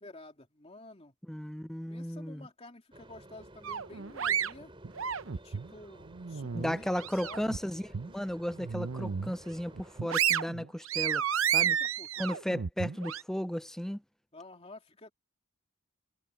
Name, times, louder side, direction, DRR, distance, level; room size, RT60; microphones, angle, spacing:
voice 1, 0.0-1.1 1.9-4.7 5.3-7.5 11.5-12.4 14.3-15.1, left 2 dB, 30° left, 2.9 m, -51 dB
voice 2, 1.3-2.5 6.5-11.2 11.5-11.8 12.2-14.0, equal, ahead, 0.3 m, -35 dB
sound 1, 2.9-10.0, right 1 dB, 25° right, 4.8 m, -53 dB
sound 2, 3.6-5.7 6.1-7.6 7.9-8.1 8.6-9.3 9.7-13.2, right 8 dB, 65° right, 0.7 m, -31 dB
head